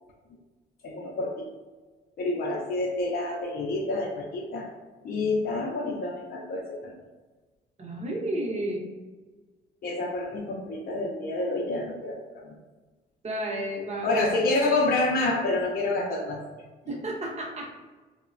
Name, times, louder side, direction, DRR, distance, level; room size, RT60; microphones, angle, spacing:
voice 1, 0.8-1.5 2.2-4.7 5.0-6.9 9.8-12.5 14.0-16.4, left 2 dB, 50° left, -2 dB, 0.5 m, -28 dB
voice 2, 7.8-8.8 13.2-14.2 16.9-17.7, right 1 dB, 35° right, -1 dB, 0.7 m, -32 dB
3.0 x 2.1 x 2.4 m, 1.3 s
cardioid pair, 90°, 20 cm